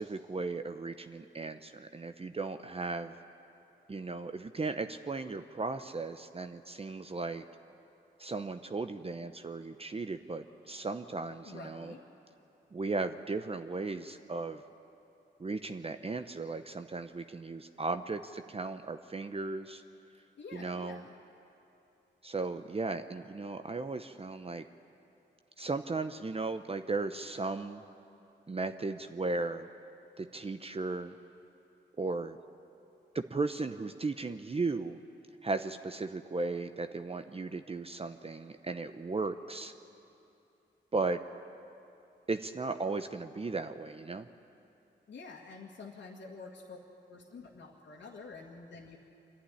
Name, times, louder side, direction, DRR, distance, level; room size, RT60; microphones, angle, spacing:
voice 1, 0.0-3.2 3.9-7.4 8.2-11.9 12.7-14.6 15.4-19.8 20.5-21.0 22.2-24.6 25.6-27.8 28.5-29.7 30.2-31.1 32.0-32.4 33.1-35.0 35.4-39.7 40.9-41.2 42.3-44.3, right 3 dB, 30° right, 8 dB, 0.8 m, -36 dB
voice 2, 11.4-12.0 20.4-21.1 45.1-46.8 47.1-49.0, left 4 dB, 70° left, -3 dB, 2.0 m, -48 dB
25.0 x 11.5 x 9.9 m, 2.8 s
cardioid pair, 55°, 20 cm